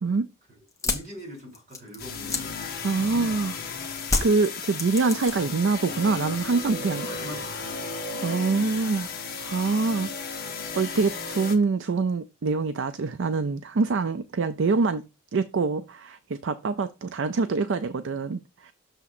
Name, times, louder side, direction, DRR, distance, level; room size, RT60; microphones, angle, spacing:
voice 1, 0.5-2.6 2.9-3.4 6.7-7.8, equal, 40° right, 3.4 m, -43 dB
sound 1, 0.7-3.4 4.0-5.6 5.9-6.5, left 3 dB, 15° left, 1.1 m, -30 dB
sound 2, 2.0-11.5, left 4 dB, 45° left, 1.3 m, -35 dB
voice 2, 2.8-3.6 4.2-7.1 8.2-9.1 9.4-10.1 10.8-15.1 15.3-18.7, right 4 dB, 55° right, 0.4 m, -25 dB
6.8 x 3.6 x 5.9 m
head